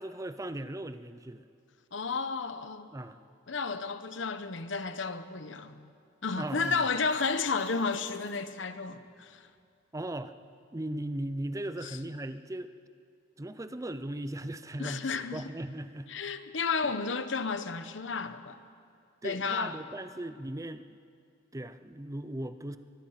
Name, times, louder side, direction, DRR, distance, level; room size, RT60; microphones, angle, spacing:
voice 1, 0.0-1.4 2.9-3.2 6.4-6.9 9.9-10.3 10.7-12.7 13.4-16.1 19.2-20.9 21.5-22.8, right 1 dB, 15° right, 0.6 m, -38 dB
voice 2, 1.9-2.9 3.5-5.9 6.2-9.5 11.8-12.0 14.8-15.5 16.1-18.6 19.2-19.7, left 4 dB, 70° left, 1.0 m, -32 dB
sound 1, 6.4-8.6, right 3 dB, 40° right, 4.2 m, -60 dB
23.0 x 21.0 x 5.9 m
head